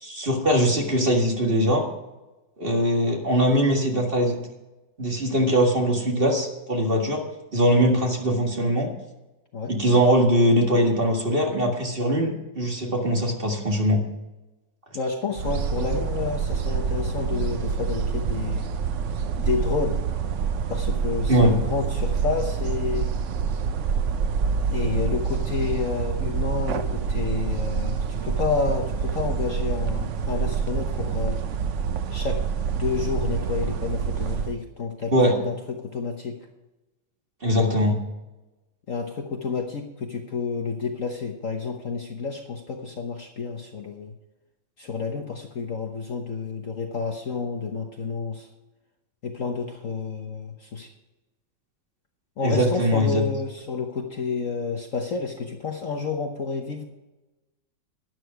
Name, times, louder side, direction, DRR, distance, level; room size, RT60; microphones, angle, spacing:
voice 1, 0.0-1.8 2.6-4.4 5.0-7.2 7.5-8.9 9.7-14.0 21.3-21.5 35.1-35.3 37.4-38.0 52.4-53.2, equal, 30° right, 1 dB, 1.8 m, -21 dB
voice 2, 14.9-18.7 19.4-20.0 20.7-23.1 24.7-31.4 32.1-32.4 32.7-36.4 38.9-44.1 44.8-48.5 49.2-50.9 52.4-56.9, left 5 dB, 50° left, 3 dB, 1.2 m, -30 dB
sound 1, 15.3-34.5, right 6 dB, 65° right, 0.7 m, -27 dB
12.5 x 10.0 x 4.9 m, 1.0 s
omnidirectional pair, 2.1 m